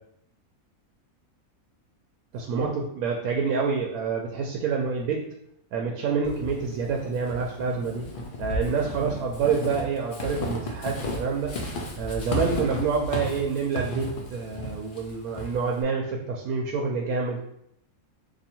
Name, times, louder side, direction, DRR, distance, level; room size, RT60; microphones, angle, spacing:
voice 1, 2.3-5.2 5.7-8.0 8.4-11.5 12.0-17.4, right 5 dB, 80° right, 0 dB, 1.0 m, -27 dB
Walk footsteps / Squeak, 6.2-15.8, left 1 dB, 50° left, 0.6 m, -34 dB
2.7 x 2.7 x 4.3 m, 0.76 s
omnidirectional pair, 1.5 m